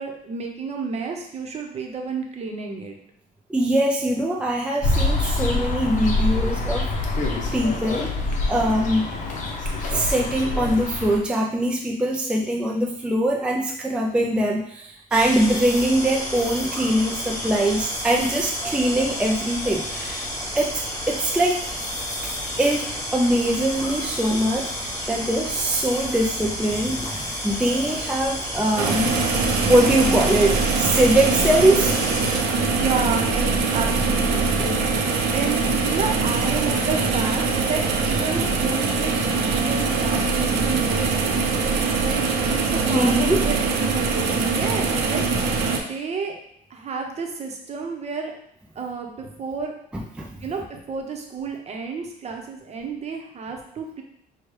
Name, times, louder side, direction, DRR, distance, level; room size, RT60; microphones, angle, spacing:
voice 1, 0.0-3.0 32.7-41.4 42.0-45.5 45.7-46.3 46.7-48.3 48.7-49.7 50.4-54.0, right 5 dB, 40° right, 2 dB, 0.8 m, -31 dB
voice 2, 3.5-6.9 7.5-8.2 8.5-9.1 9.8-21.6 22.6-32.0 42.8-43.4 49.9-50.4, right 1 dB, 5° right, -1 dB, 0.4 m, -22 dB
sound 1, 4.8-11.2, left 2 dB, 50° left, 0.8 m, -25 dB
sound 2, 15.1-32.4, equal, 20° left, 1.2 m, -31 dB
sound 3, 28.8-45.8, right 4 dB, 85° right, 0.7 m, -22 dB
6.0 x 2.3 x 3.2 m, 0.70 s
cardioid pair, 110°, 17 cm